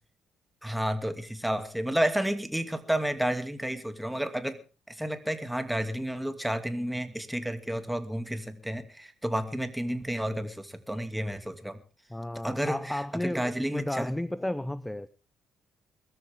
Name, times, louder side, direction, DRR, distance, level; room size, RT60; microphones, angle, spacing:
voice 1, 0.6-4.6 4.9-11.8 12.4-14.1, right 1 dB, 5° right, 9 dB, 2.5 m, -31 dB
voice 2, 12.1-15.1, left 1 dB, 10° left, 18 dB, 0.7 m, -33 dB
22.5 x 13.5 x 3.6 m, 0.35 s
hypercardioid pair, 45°, 0 cm